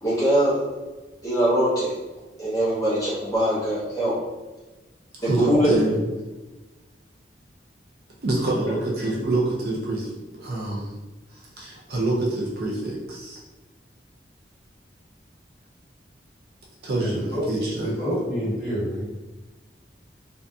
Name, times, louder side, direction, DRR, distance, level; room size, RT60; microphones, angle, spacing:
voice 1, 0.0-0.6 1.2-1.9 2.4-4.1 5.2-5.7 8.6-8.8, right 1 dB, 20° left, -9 dB, 0.7 m, -22 dB
voice 2, 5.1-6.0 8.2-11.0 11.3-13.4 16.8-18.0, right 2 dB, 55° right, -4 dB, 0.5 m, -26 dB
voice 3, 17.0-19.0, equal, ahead, -12 dB, 1.5 m, -28 dB
2.6 x 2.5 x 2.3 m, 1.2 s
head